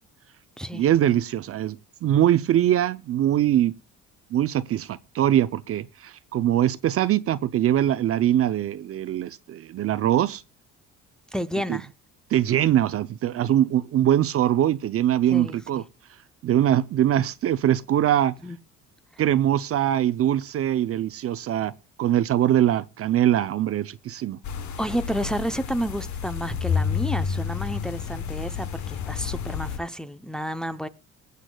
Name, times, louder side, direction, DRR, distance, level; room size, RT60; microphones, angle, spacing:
voice 1, 0.7-3.7 4.3-10.4 11.7-11.8 12.3-15.8 16.4-18.3 19.2-21.7 22.0-24.4, right 11 dB, 45° right, 0.5 m, -22 dB
voice 2, 11.3-11.9 15.3-15.8 18.4-18.6 19.1-19.2 24.8-30.9, equal, ahead, 0.6 m, -31 dB
sound 1, 24.4-29.8, left 7 dB, 65° left, 1.1 m, -30 dB
21.5 x 8.3 x 2.3 m
cardioid pair, 120°, 31 cm